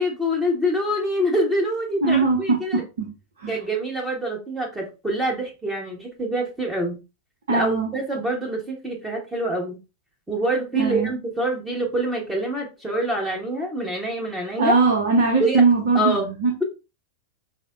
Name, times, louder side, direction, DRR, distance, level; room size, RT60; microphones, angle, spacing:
voice 1, 0.0-2.8 3.5-7.0 7.5-9.8 10.3-14.8 15.4-15.6 15.9-16.3, right 1 dB, 10° right, -2 dB, 1.0 m, -25 dB
voice 2, 2.0-3.1 3.4-3.6 7.5-7.9 10.8-11.1 14.6-16.5, right 4 dB, 60° right, 1 dB, 0.7 m, -20 dB
4.8 x 2.0 x 2.5 m, 0.28 s
figure-of-eight pair, 90°, 0 cm